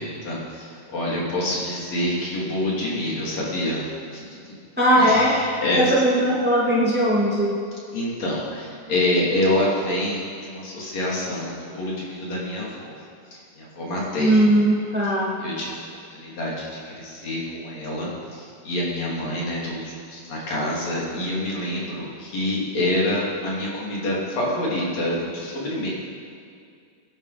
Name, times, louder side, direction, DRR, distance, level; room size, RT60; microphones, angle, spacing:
voice 1, 0.0-4.6 5.0-5.9 7.9-12.9 13.3-14.4 15.4-25.9, left 1 dB, 45° left, -5 dB, 3.9 m, -27 dB
voice 2, 4.8-7.6 14.2-15.3, right 1 dB, 5° right, -5 dB, 1.2 m, -19 dB
23.0 x 11.0 x 5.0 m, 2.3 s
omnidirectional pair, 4.3 m